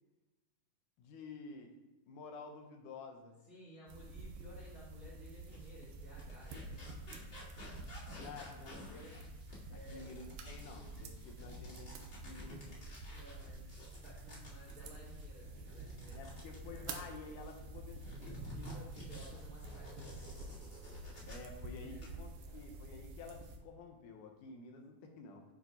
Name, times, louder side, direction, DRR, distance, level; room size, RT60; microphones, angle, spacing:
voice 1, 1.0-1.7 2.1-3.4 8.2-9.3 9.7-12.8 16.1-18.4 21.3-25.4, left 4 dB, 80° left, 3 dB, 2.2 m, -51 dB
voice 2, 3.5-6.8 9.7-10.1 13.1-16.9 18.4-20.7 21.8-22.7, equal, 50° right, -7 dB, 1.0 m, -57 dB
sound 1, 3.9-23.6, right 2 dB, 80° right, 2.1 m, -49 dB
sound 2, 4.6-4.8 5.3-17.6 18.0-21.6 21.8-22.1, left 1 dB, 40° left, 0.8 m, -53 dB
8.7 x 4.5 x 2.7 m, 1.1 s
omnidirectional pair, 3.7 m